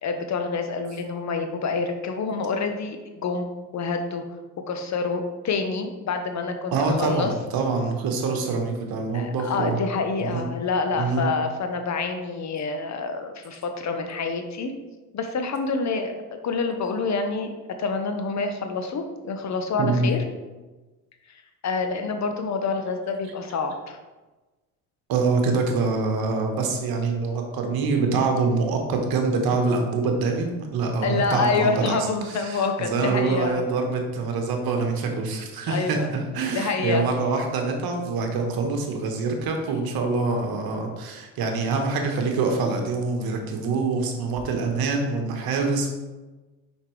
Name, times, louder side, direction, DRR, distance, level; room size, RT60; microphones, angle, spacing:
voice 1, 0.0-3.5 3.7-4.2 4.7-7.3 9.1-14.7 15.1-17.5 17.8-20.2 21.6-24.0 31.0-33.6 35.7-36.1 36.5-37.1, left 4 dB, 40° left, 5 dB, 0.9 m, -27 dB
voice 2, 6.7-9.8 10.2-10.5 10.9-11.3 19.8-20.1 25.1-45.9, right 4 dB, 60° right, 3 dB, 1.3 m, -25 dB
5.8 x 5.2 x 3.1 m, 1.2 s
supercardioid pair, 75°, 41 cm